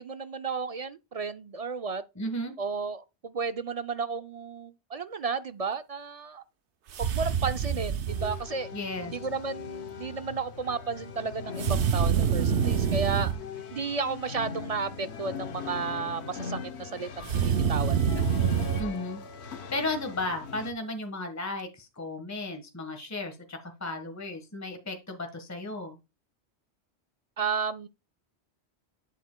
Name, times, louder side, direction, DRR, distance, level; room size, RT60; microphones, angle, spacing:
voice 1, 0.0-2.0 2.6-6.4 7.0-8.7 9.1-13.3 13.7-18.2 27.4-27.9, right 5 dB, 50° right, 0.4 m, -33 dB
voice 2, 2.2-2.5 8.7-9.2 18.8-26.0, left 2 dB, 15° left, 1.4 m, -35 dB
sound 1, 6.9-8.4 11.6-13.4 17.2-18.9, right 7 dB, 85° right, 1.1 m, -26 dB
sound 2, 8.1-20.7, left 6 dB, 80° left, 1.2 m, -40 dB
9.2 x 8.1 x 2.2 m
omnidirectional pair, 1.1 m